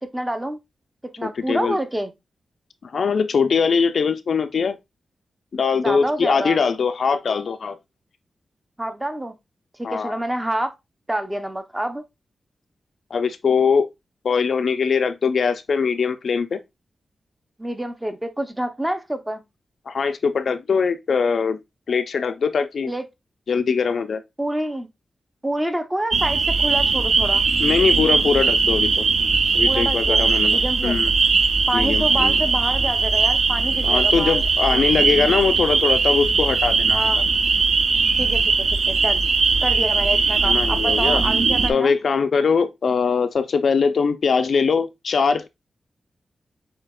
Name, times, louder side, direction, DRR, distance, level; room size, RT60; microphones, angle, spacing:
voice 1, 0.0-0.6 1.0-2.1 5.8-6.6 8.8-9.3 9.8-10.7 11.1-12.0 17.6-19.4 22.9-23.0 24.4-24.9 25.4-27.5 29.6-31.0 31.7-34.8 36.9-37.2 38.2-38.5 38.9-39.3 39.6-41.9, right 1 dB, 10° right, 0.5 m, -27 dB
voice 2, 1.2-1.8 2.8-4.8 5.5-7.8 9.8-10.2 13.1-13.9 14.2-16.6 19.9-21.6 21.9-22.9 23.5-24.2 27.6-29.0 29.5-31.1 31.7-32.3 33.8-37.0 40.4-41.2 41.7-45.5, left 5 dB, 60° left, 0.4 m, -21 dB
sound 1, 26.1-41.7, right 4 dB, 55° right, 0.5 m, -19 dB
7.5 x 2.8 x 2.2 m
wide cardioid pair, 155°, 0 cm